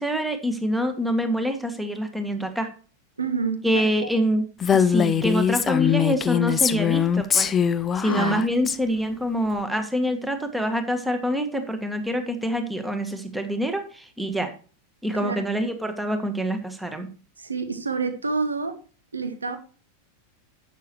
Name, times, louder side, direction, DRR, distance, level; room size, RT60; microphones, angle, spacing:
voice 1, 0.0-2.7 3.6-7.5 7.9-14.5 15.0-17.1, equal, 5° right, 1.6 m, -26 dB
voice 2, 3.2-3.8 8.0-8.4 15.1-15.4 17.4-18.8 19.1-19.6, right 4 dB, 75° right, 1.4 m, -28 dB
Female speech woman speaking, 4.6-8.8, left 8 dB, 20° left, 0.6 m, -22 dB
11.0 x 8.2 x 3.1 m
figure-of-eight pair, 90°, 0 cm